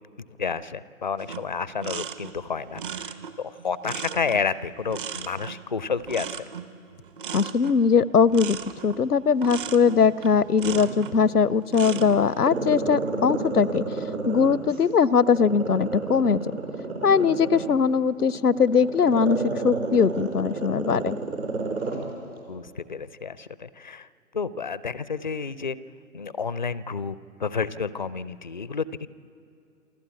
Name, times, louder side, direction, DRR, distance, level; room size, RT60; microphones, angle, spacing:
voice 1, 0.4-6.5 22.5-24.1 24.3-25.8 26.1-29.1, left 5 dB, 35° left, 18 dB, 0.4 m, -30 dB
sound 1, 1.2-11.2 11.6-12.2, right 7 dB, 35° right, 0.9 m, -37 dB
voice 2, 7.3-8.6 8.8-13.8 14.3-16.4 17.0-19.4 19.6-21.2, left 6 dB, 90° left, 21 dB, 0.6 m, -21 dB
Growling, 9.6-11.4 11.8-14.8 15.2-22.0 22.4-22.5, right 3 dB, 70° right, 4.9 m, -30 dB
28.0 x 12.5 x 8.5 m, 2.7 s
figure-of-eight pair, 125°, 45 cm